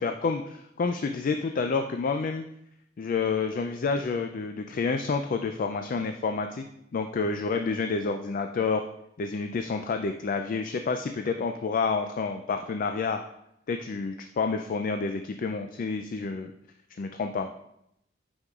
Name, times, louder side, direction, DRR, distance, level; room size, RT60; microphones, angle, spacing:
voice 1, 0.0-2.4 3.0-6.6 6.9-8.8 9.2-13.2 13.7-16.5 17.0-17.5, left 4 dB, 45° left, 6 dB, 0.3 m, -29 dB
8.2 x 5.4 x 2.4 m, 0.78 s
head